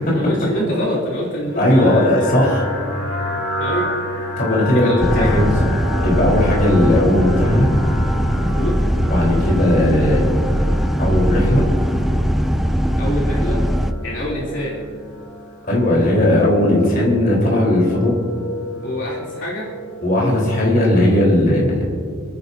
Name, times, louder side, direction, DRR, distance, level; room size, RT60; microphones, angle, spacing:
voice 1, 0.1-2.3 3.6-3.9 4.7-5.4 8.4-8.7 13.0-13.6 14.0-14.8 18.8-19.7, equal, 65° left, -6 dB, 3.2 m, -25 dB
sound 1, 1.5-21.2, left 1 dB, 80° left, 2.4 m, -31 dB
voice 2, 1.5-2.6 4.4-5.5 6.0-7.7 9.0-10.2 11.0-11.6 15.7-18.2 20.0-21.8, left 1 dB, 45° left, -3 dB, 4.2 m, -17 dB
sound 2, 5.0-13.9, equal, ahead, 0.4 m, -20 dB
29.5 x 10.5 x 2.8 m, 2.2 s
head